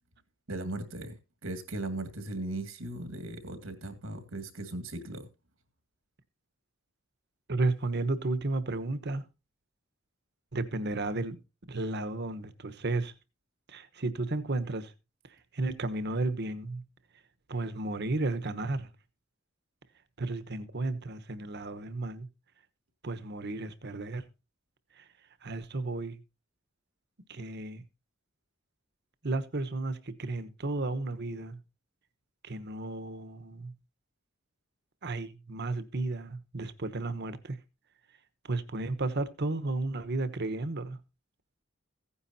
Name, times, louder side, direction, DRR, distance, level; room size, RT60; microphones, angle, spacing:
voice 1, 0.5-1.2 1.4-5.3, right 2 dB, 85° right, 2.2 m, -37 dB
voice 2, 7.5-9.2 10.5-11.4 11.7-13.1 13.7-14.9 15.5-16.8 17.5-18.9 20.2-22.3 23.0-24.2 25.0-25.1 25.4-26.2 27.3-27.8 29.2-31.6 32.4-33.7 35.0-37.6 38.4-41.0, right 2 dB, 55° right, 1.1 m, -33 dB
15.5 x 9.8 x 2.7 m
head